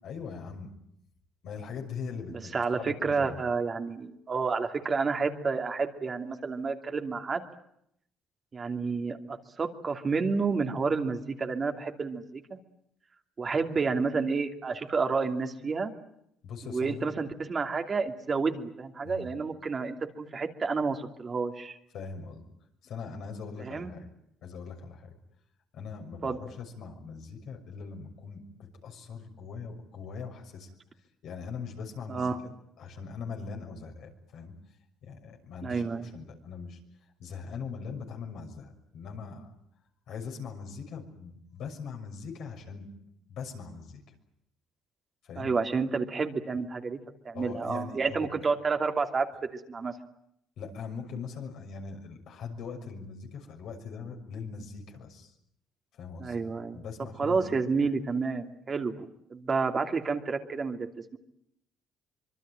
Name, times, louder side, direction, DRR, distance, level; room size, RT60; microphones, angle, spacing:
voice 1, 0.0-0.7 1.4-2.5 2.8-3.5 16.4-17.1 19.0-19.3 21.9-22.4 22.8-24.1 24.4-25.1 25.7-30.7 31.2-32.3 32.8-34.5 35.0-36.8 37.2-39.5 40.1-42.9 43.3-44.0 45.2-45.6 47.3-48.3 50.6-55.3 55.9-57.6, left 5 dB, 70° left, 2 dB, 6.4 m, -41 dB
voice 2, 2.3-7.4 8.5-12.6 13.4-15.9 16.6-21.8 23.6-23.9 26.2-26.4 32.1-32.4 35.6-36.1 45.4-47.0 47.2-49.9 56.2-56.8 57.2-60.9, right 4 dB, 40° right, 5 dB, 2.8 m, -30 dB
25.5 x 23.0 x 9.0 m, 0.75 s
supercardioid pair, 80°, 0 cm